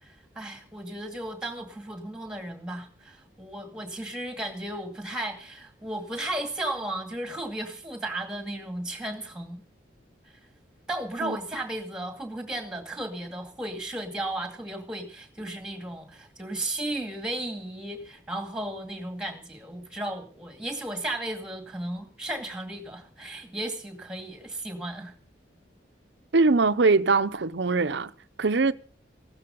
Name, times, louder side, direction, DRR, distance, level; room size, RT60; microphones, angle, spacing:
voice 1, 0.0-9.6 10.9-25.1, right 1 dB, 5° right, 2.3 m, -35 dB
voice 2, 26.3-28.1 28.4-28.7, right 3 dB, 70° right, 0.7 m, -22 dB
16.0 x 12.5 x 5.4 m
head